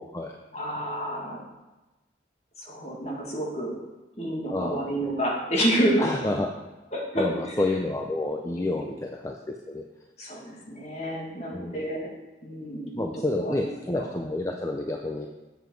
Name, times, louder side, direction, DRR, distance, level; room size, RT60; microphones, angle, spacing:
voice 1, 0.0-0.3 4.5-4.9 6.0-6.5 7.2-9.8 11.5-11.8 12.9-15.3, left 2 dB, 15° left, 2 dB, 0.5 m, -29 dB
voice 2, 0.5-1.4 2.6-3.8 4.2-6.1 6.9-7.6 8.5-8.9 10.2-12.1 12.4-13.5 13.9-14.0, equal, 40° left, -3 dB, 1.9 m, -29 dB
8.0 x 7.1 x 4.6 m, 1.1 s
head